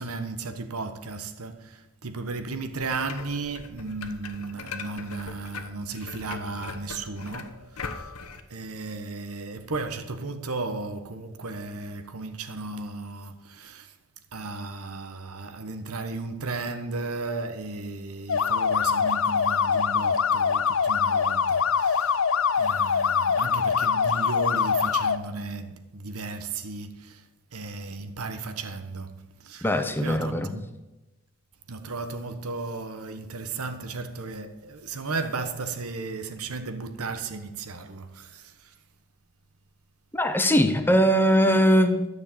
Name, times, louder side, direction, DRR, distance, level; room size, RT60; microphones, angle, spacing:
voice 1, 0.0-1.6 2.0-7.6 8.5-13.9 14.3-22.1 22.6-26.9 27.5-29.1 29.4-29.6 30.0-30.6 31.7-38.4, right 3 dB, 80° right, 1.2 m, -34 dB
sound 1, 2.8-8.4, left 4 dB, 85° left, 1.2 m, -40 dB
sound 2, 18.3-25.2, left 6 dB, 60° left, 0.5 m, -23 dB
voice 2, 29.6-30.5 40.1-42.1, equal, 10° left, 0.7 m, -21 dB
13.0 x 6.8 x 8.5 m
head